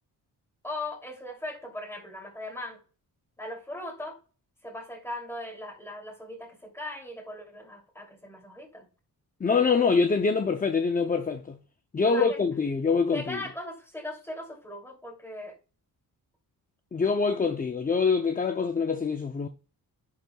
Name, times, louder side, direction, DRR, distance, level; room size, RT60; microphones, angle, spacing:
voice 1, 0.6-2.8 3.4-4.2 4.6-8.9 12.0-12.4 13.1-15.6, left 1 dB, 5° left, 2.7 m, -39 dB
voice 2, 9.4-11.6 11.9-13.4 16.9-19.5, left 5 dB, 20° left, 0.5 m, -25 dB
10.5 x 7.9 x 2.3 m
wide cardioid pair, 155°, 38 cm